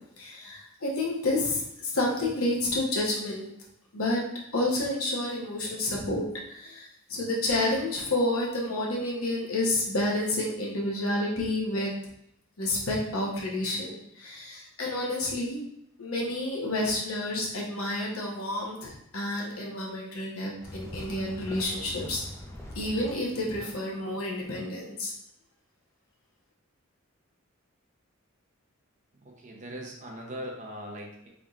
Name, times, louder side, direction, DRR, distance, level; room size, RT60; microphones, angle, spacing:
voice 1, 0.2-3.5 3.9-4.2 4.5-12.0 12.6-15.6 16.0-22.2 22.7-25.1, left 1 dB, 75° left, -3 dB, 1.0 m, -29 dB
sound 1, 20.6-23.1, left 1 dB, 15° left, 0.4 m, -42 dB
voice 2, 29.2-31.3, equal, 35° right, 0 dB, 0.7 m, -40 dB
4.1 x 3.5 x 2.4 m, 0.77 s
head